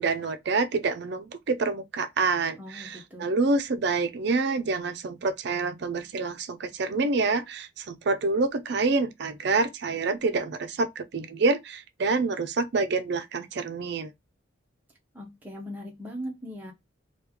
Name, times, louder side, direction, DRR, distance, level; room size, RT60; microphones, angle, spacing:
voice 1, 0.0-14.1, right 3 dB, 60° right, 0.4 m, -27 dB
voice 2, 2.6-3.3 15.1-16.7, equal, 10° right, 0.6 m, -39 dB
3.1 x 2.3 x 3.4 m
head